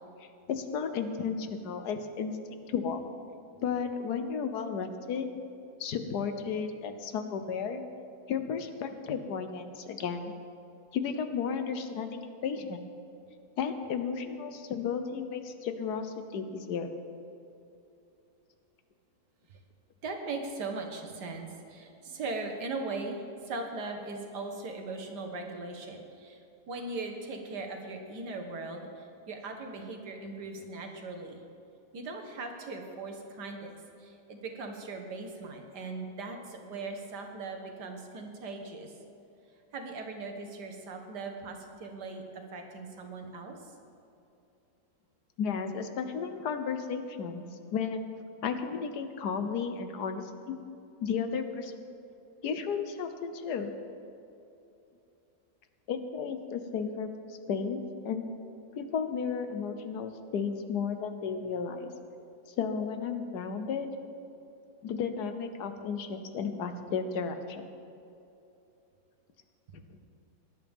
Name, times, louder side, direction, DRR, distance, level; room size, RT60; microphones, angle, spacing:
voice 1, 0.2-2.3 2.7-3.0 3.6-5.3 5.8-7.8 8.3-10.3 10.9-12.8 13.6-16.9 45.4-47.4 47.7-48.0 48.4-50.6 51.0-51.9 52.4-53.7 55.9-58.3 58.7-61.9 62.6-63.9 64.8-67.6, left 6 dB, 70° left, 8 dB, 1.4 m, -33 dB
voice 2, 20.0-26.4 26.7-31.4 31.9-39.0 39.7-43.7, right 3 dB, 70° right, 3 dB, 1.9 m, -39 dB
18.5 x 11.0 x 3.6 m, 2.8 s
omnidirectional pair, 1.8 m